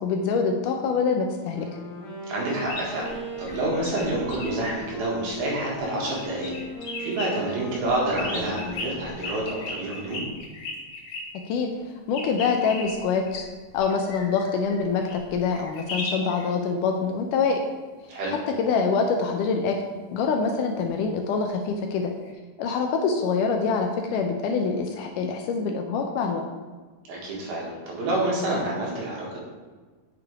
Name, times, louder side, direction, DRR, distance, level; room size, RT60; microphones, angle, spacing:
voice 1, 0.0-1.7 11.5-11.7 12.1-13.5 13.7-17.6 18.6-19.8 20.1-22.1 22.6-26.4, left 5 dB, 75° left, 3 dB, 2.0 m, -25 dB
Wind instrument woodwind instrument, 1.4-9.5, equal, 35° left, 3.1 m, -38 dB
voice 2, 2.3-6.5 7.0-10.2 18.1-18.3 27.1-29.4, right 1 dB, 90° right, -4 dB, 3.8 m, -28 dB
sound 1, 2.6-5.8 6.1-7.3 7.8-11.2 12.1-16.5 22.3-22.4, left 2 dB, 55° left, 1.7 m, -36 dB
8.6 x 6.7 x 3.5 m, 1.4 s
omnidirectional pair, 4.1 m